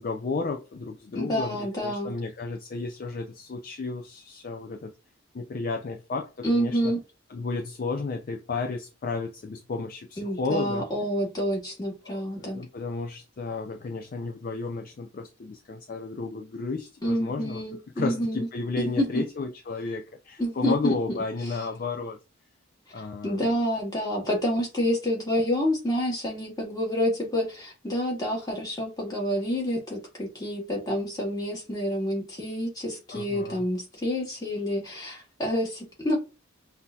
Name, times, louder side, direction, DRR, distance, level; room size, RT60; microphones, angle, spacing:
voice 1, 0.0-4.9 5.3-6.9 7.3-10.9 12.1-17.6 18.0-22.2 22.9-23.6 33.1-33.6, left 4 dB, 45° left, 0.4 m, -33 dB
voice 2, 1.1-2.1 6.4-7.0 10.2-12.6 17.0-18.5 18.8-19.2 20.4-20.9 23.2-36.2, equal, 20° left, 1.6 m, -28 dB
5.7 x 2.7 x 2.3 m
head